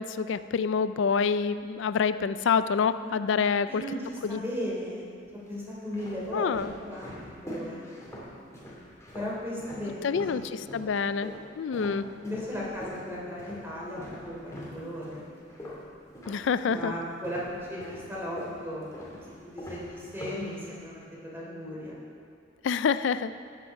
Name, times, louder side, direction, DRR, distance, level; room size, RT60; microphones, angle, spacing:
voice 1, 0.0-3.8 4.2-4.4 6.3-6.7 10.0-12.0 16.3-16.9 22.6-23.3, left 6 dB, 75° left, 13 dB, 0.4 m, -27 dB
voice 2, 3.7-5.1 5.5-6.5 6.8-7.9 9.1-10.6 11.8-15.6 16.7-17.4 17.7-18.8 19.4-22.0, equal, 10° right, -6 dB, 3.2 m, -36 dB
sound 1, 3.9-4.6 5.3-10.4 10.7-17.0 17.2-20.9, left 1 dB, 15° left, 2.6 m, -43 dB
13.5 x 9.6 x 4.8 m, 2.4 s
head